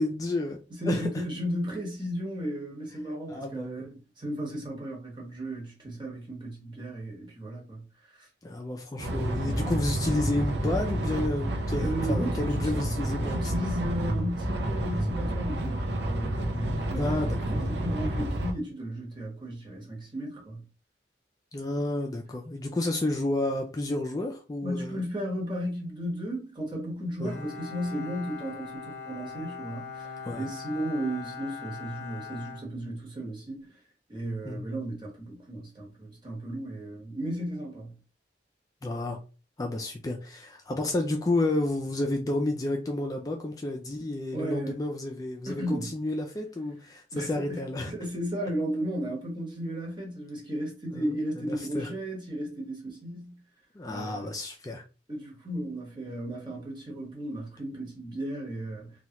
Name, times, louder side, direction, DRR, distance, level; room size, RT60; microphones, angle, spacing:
voice 1, 0.0-0.6 0.9-1.2 3.3-3.8 8.4-13.6 16.9-17.5 21.5-25.0 27.2-27.4 30.2-30.5 34.4-34.7 38.8-39.2 39.6-47.9 50.9-51.2 51.5-51.9 53.8-54.8, left 2 dB, 20° left, 0.3 m, -31 dB
voice 2, 0.7-8.3 11.8-12.7 13.3-17.2 17.5-20.6 24.6-33.7 34.1-37.9 44.3-44.8 45.5-45.9 47.1-53.4 53.8-54.3 55.1-59.0, right 1 dB, 25° right, 1.1 m, -35 dB
sound 1, 9.0-18.5, right 1 dB, 85° right, 0.6 m, -29 dB
Bowed string instrument, 27.2-33.4, left 5 dB, 40° left, 0.8 m, -41 dB
3.1 x 2.3 x 2.8 m
head